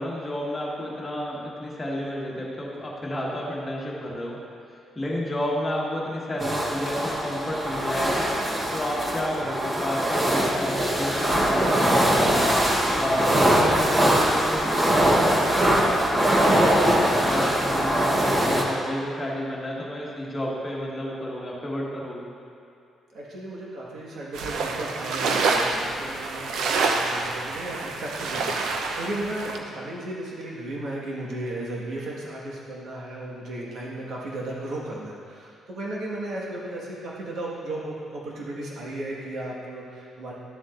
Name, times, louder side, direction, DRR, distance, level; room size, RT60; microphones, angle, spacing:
voice 1, 0.0-4.4 4.9-8.2 8.7-12.2 12.9-22.3, left 1 dB, 15° left, -5 dB, 1.5 m, -31 dB
sound 1, 6.4-18.6, right 1 dB, 20° right, 1.1 m, -22 dB
voice 2, 23.1-40.3, right 1 dB, 60° right, -5 dB, 1.6 m, -35 dB
sound 2, 24.3-29.6, right 4 dB, 85° right, 0.7 m, -27 dB
12.5 x 7.3 x 2.5 m, 2.6 s
cardioid pair, 150°, 0 cm